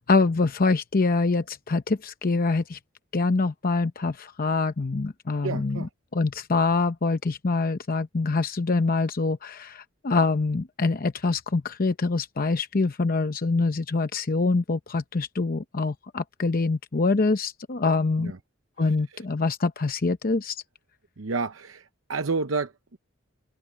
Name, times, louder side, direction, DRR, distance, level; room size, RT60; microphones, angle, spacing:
voice 1, 0.0-2.8 3.1-18.3 18.8-20.6, left 3 dB, 45° left, 0.7 m, -25 dB
voice 2, 5.4-5.9 18.2-18.4 21.2-23.0, right 4 dB, 90° right, 0.8 m, -30 dB
head